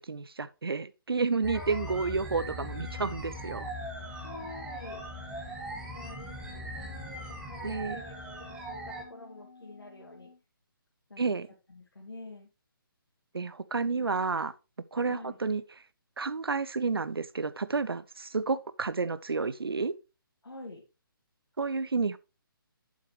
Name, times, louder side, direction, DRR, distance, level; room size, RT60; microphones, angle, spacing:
voice 1, 0.0-3.7 7.6-8.0 11.2-11.5 13.3-14.5 14.9-15.6 16.2-19.9 21.6-22.2, right 4 dB, 80° right, 0.6 m, -30 dB
sound 1, 1.4-9.0, equal, 5° right, 1.4 m, -40 dB
voice 2, 1.5-2.2 4.0-5.1 5.3-10.3 11.1-11.2 11.7-12.5 13.8-14.1 15.1-15.4 20.4-20.8, left 2 dB, 80° left, 1.9 m, -47 dB
Wind instrument woodwind instrument, 2.3-10.4, left 3 dB, 60° left, 2.2 m, -51 dB
8.5 x 7.4 x 3.2 m
figure-of-eight pair, 145°, 12 cm